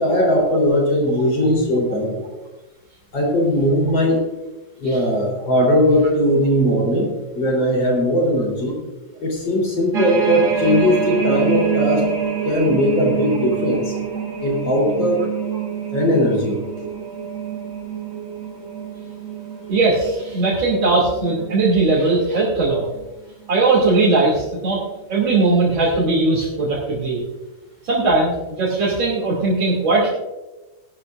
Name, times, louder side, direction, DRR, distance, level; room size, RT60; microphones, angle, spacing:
voice 1, 0.0-2.2 3.1-4.2 4.8-8.8 9.2-12.0 12.4-14.0 14.4-15.3 15.9-16.6, equal, 70° left, -1 dB, 4.5 m, -19 dB
sound 1, 9.9-22.3 22.8-23.0 23.5-24.2 24.9-25.0, right 7 dB, 55° right, 2.2 m, -27 dB
voice 2, 19.7-22.8 23.5-24.8 25.1-27.2 27.8-30.1, right 3 dB, 70° right, -7 dB, 3.5 m, -19 dB
18.0 x 12.0 x 2.6 m, 1.1 s
omnidirectional pair, 2.2 m